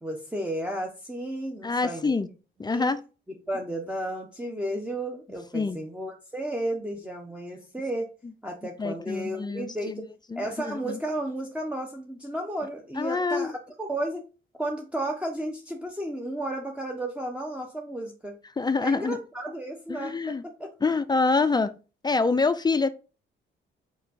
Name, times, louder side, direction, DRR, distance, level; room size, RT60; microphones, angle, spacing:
voice 1, 0.0-2.1 2.7-2.9 3.5-8.1 8.4-10.1 10.4-14.3 14.6-18.3 18.8-20.7, right 1 dB, 5° right, 1.1 m, -33 dB
voice 2, 1.6-2.3 2.6-3.0 5.5-5.8 8.8-10.0 10.3-11.0 13.0-13.5 18.6-19.2 19.9-20.4 20.8-21.7 22.0-22.9, left 4 dB, 20° left, 0.5 m, -26 dB
5.0 x 4.6 x 4.2 m
cardioid pair, 90°, 20 cm